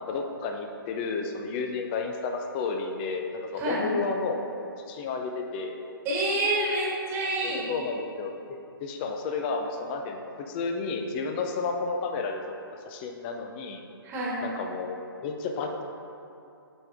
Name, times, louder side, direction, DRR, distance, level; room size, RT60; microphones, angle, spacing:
voice 1, 0.0-4.4 4.9-5.8 7.4-8.3 8.8-12.5 12.9-13.8 14.4-15.8, left 4 dB, 25° left, 4 dB, 0.5 m, -32 dB
voice 2, 3.6-3.9 6.0-7.7 14.0-14.4, right 1 dB, 20° right, -6 dB, 1.6 m, -28 dB
8.4 x 4.5 x 3.5 m, 2.7 s
hypercardioid pair, 145°, 12 cm